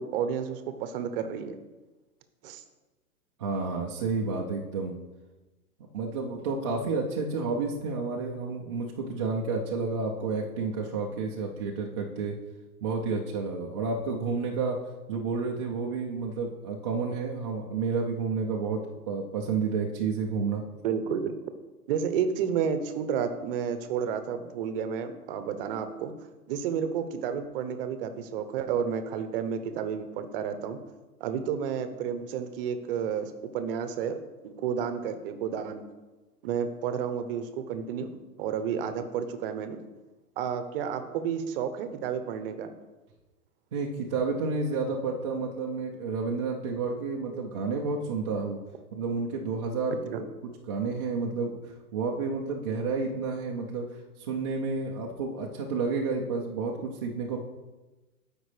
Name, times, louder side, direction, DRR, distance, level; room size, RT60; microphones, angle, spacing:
voice 1, 0.0-1.6 2.4-2.6 20.8-21.3 21.9-26.1 26.5-30.8 31.2-35.8 36.4-38.1 38.4-39.8 40.4-42.7 50.1-50.2, right 7 dB, 40° right, 9 dB, 0.8 m, -31 dB
voice 2, 3.4-4.9 5.9-12.3 12.8-14.8 15.1-18.8 19.1-20.6 43.7-48.6 48.9-50.2 50.7-53.8 54.2-57.4, right 4 dB, 20° right, -2 dB, 0.4 m, -30 dB
12.0 x 5.2 x 3.3 m, 1.1 s
hypercardioid pair, 135°, 45 cm